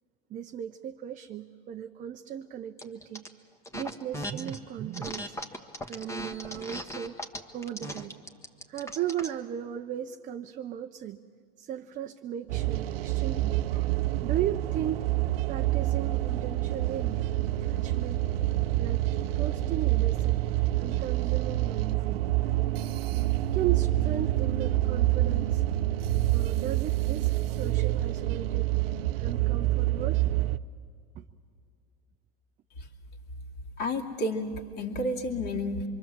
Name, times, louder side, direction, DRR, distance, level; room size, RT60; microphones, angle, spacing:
voice 1, 0.3-3.3 3.7-5.4 5.8-8.2 8.7-11.2 11.6-13.6 14.2-15.1 15.5-18.3 18.8-19.0 19.3-22.3 23.5-25.6 26.3-28.7 29.2-30.3 31.1-31.3, right 10 dB, 25° right, 6 dB, 0.7 m, -36 dB
sound 1, 2.8-3.3 3.6-4.6 4.9-9.4, left 1 dB, 10° left, 1.4 m, -38 dB
sound 2, 12.5-30.6, right 15 dB, 75° right, 0.7 m, -27 dB
voice 2, 33.8-35.9, left 1 dB, 35° left, 2 dB, 2.5 m, -31 dB
26.0 x 23.5 x 7.5 m, 2.2 s
hypercardioid pair, 120°, 30 cm